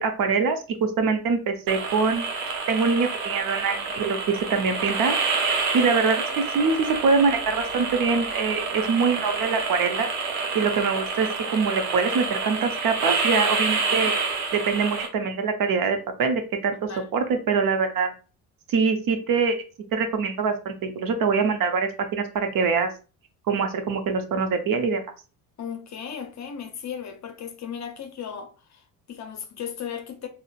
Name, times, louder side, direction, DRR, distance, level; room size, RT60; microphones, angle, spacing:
voice 1, 0.0-2.2 2.7-4.2 4.5-5.2 5.7-10.1 10.5-11.3 11.5-14.1 14.5-16.8 17.1-18.1 18.7-19.6 19.9-22.9 23.5-25.0, right 5 dB, 45° right, 0.7 m, -24 dB
sound 1, 1.7-15.1, right 4 dB, 75° right, 0.8 m, -28 dB
voice 2, 25.6-30.3, left 7 dB, 35° left, 0.7 m, -36 dB
3.7 x 2.1 x 2.4 m
hypercardioid pair, 60°, 47 cm